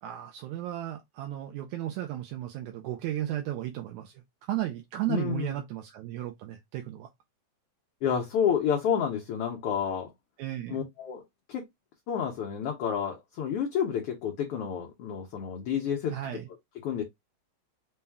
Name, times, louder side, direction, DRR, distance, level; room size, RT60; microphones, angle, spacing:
voice 1, 0.0-4.1 4.5-7.1 10.4-10.9 16.1-16.5, right 13 dB, 80° right, 1.9 m, -34 dB
voice 2, 5.1-5.5 8.0-10.1 10.7-11.2 11.5-11.6 12.1-16.1 16.8-17.0, left 8 dB, 65° left, 1.6 m, -29 dB
5.4 x 2.2 x 3.4 m
omnidirectional pair, 3.4 m